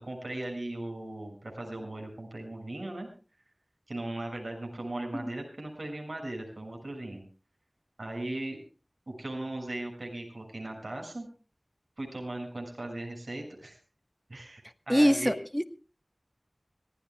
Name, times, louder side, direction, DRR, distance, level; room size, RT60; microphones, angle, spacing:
voice 1, 0.0-3.1 3.9-7.2 8.0-8.6 9.1-11.3 12.0-13.8 14.3-15.3, right 1 dB, 85° right, 3 dB, 6.7 m, -38 dB
voice 2, 14.9-15.6, equal, 5° left, 9 dB, 1.4 m, -24 dB
25.0 x 18.0 x 2.4 m, 0.36 s
wide cardioid pair, 45°, 0 cm